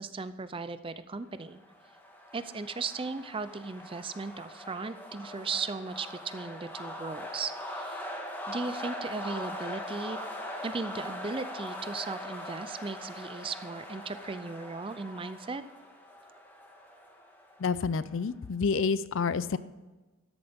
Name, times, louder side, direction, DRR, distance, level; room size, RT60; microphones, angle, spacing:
voice 1, 0.0-1.6 2.3-8.0 8.5-10.2 10.6-15.6, right 4 dB, 25° right, 13 dB, 0.5 m, -37 dB
sound 1, 1.5-18.2, left 1 dB, 10° left, 1.6 m, -41 dB
voice 2, 17.6-19.6, left 5 dB, 65° left, 16 dB, 0.5 m, -28 dB
13.0 x 11.0 x 3.6 m, 1.2 s
head